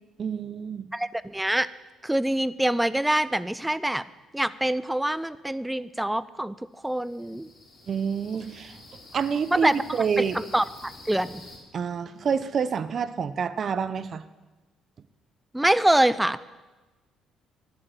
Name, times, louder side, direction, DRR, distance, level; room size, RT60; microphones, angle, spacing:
voice 1, 0.2-0.9 7.9-8.8 9.1-10.4 11.7-14.2, right 6 dB, 50° right, 15 dB, 0.7 m, -28 dB
voice 2, 0.9-1.7 2.0-4.1 4.3-6.5 6.8-7.5 9.5-9.7 10.2-11.4 15.5-16.4, right 1 dB, 5° right, 17 dB, 0.5 m, -25 dB
sound 1, 6.8-11.6, left 2 dB, 40° left, 4.0 m, -48 dB
11.5 x 8.4 x 7.9 m, 1.2 s
supercardioid pair, 80°, 0 cm